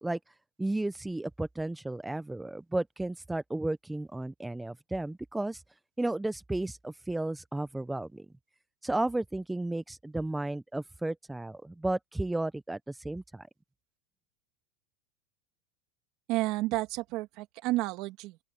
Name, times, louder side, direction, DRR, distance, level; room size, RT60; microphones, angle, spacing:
voice 1, 0.0-5.6 6.0-8.3 8.8-13.5, right 2 dB, 5° right, 0.5 m, -33 dB
voice 2, 16.3-18.4, right 18 dB, 50° right, 2.2 m, -31 dB
open air
supercardioid pair, 155°, 0 cm